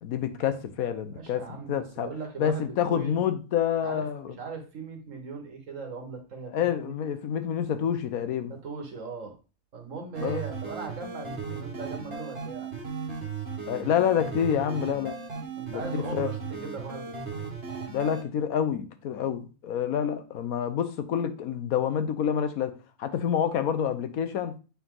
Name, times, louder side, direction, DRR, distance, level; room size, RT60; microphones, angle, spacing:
voice 1, 0.0-1.4 1.7-2.1 2.4-4.3 6.5-8.5 10.2-10.4 13.7-15.1 15.7-16.3 17.9-22.7 23.0-24.6, left 8 dB, 75° left, 9 dB, 1.2 m, -28 dB
voice 2, 1.1-3.2 3.8-6.9 8.5-9.4 9.7-12.7 15.6-17.4, right 4 dB, 60° right, 3 dB, 1.7 m, -39 dB
sound 1, 10.1-18.2, right 5 dB, 45° right, 1.6 m, -36 dB
8.6 x 4.0 x 3.8 m, 0.34 s
omnidirectional pair, 1.6 m